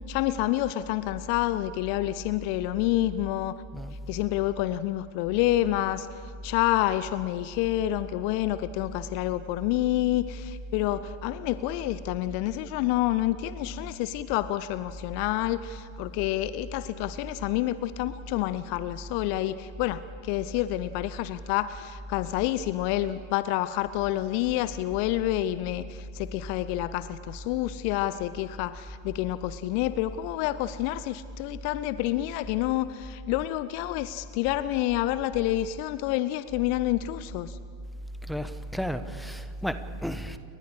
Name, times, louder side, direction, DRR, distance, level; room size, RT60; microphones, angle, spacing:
voice 1, 0.1-3.6 4.1-6.1 6.4-37.6, left 15 dB, 45° left, 0.6 m, -28 dB
voice 2, 38.3-40.4, equal, ahead, 1.2 m, -33 dB
29.5 x 23.5 x 5.0 m
figure-of-eight pair, 90°, 0 cm